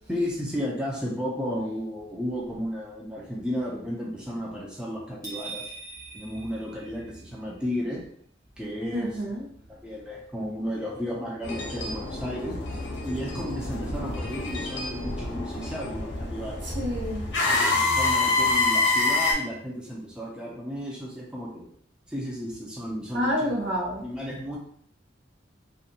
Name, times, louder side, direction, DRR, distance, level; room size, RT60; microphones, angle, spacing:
voice 1, 0.1-5.7 6.1-8.0 8.6-9.1 9.7-12.6 13.0-16.7 17.5-21.7 22.1-23.4 24.0-24.6, equal, 5° right, -4 dB, 0.4 m, -33 dB
sound 1, 5.2-7.4, right 3 dB, 20° right, 0.9 m, -41 dB
voice 2, 8.9-9.4 16.6-17.2 23.1-24.0, equal, 75° right, -2 dB, 0.8 m, -28 dB
sound 2, 11.4-19.3, left 3 dB, 70° left, 0.8 m, -27 dB
2.6 x 2.2 x 2.7 m, 0.62 s
head